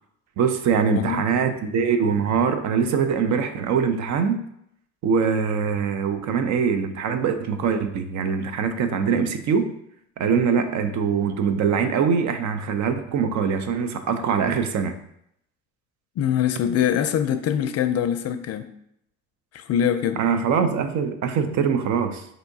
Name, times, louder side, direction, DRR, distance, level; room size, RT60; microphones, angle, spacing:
voice 1, 0.4-4.4 5.0-9.7 10.2-15.0 20.2-22.3, right 6 dB, 65° right, 0.5 m, -23 dB
voice 2, 16.2-18.7 19.5-20.2, left 9 dB, 55° left, 0.4 m, -23 dB
5.5 x 2.7 x 2.7 m
cardioid pair, 90°, 31 cm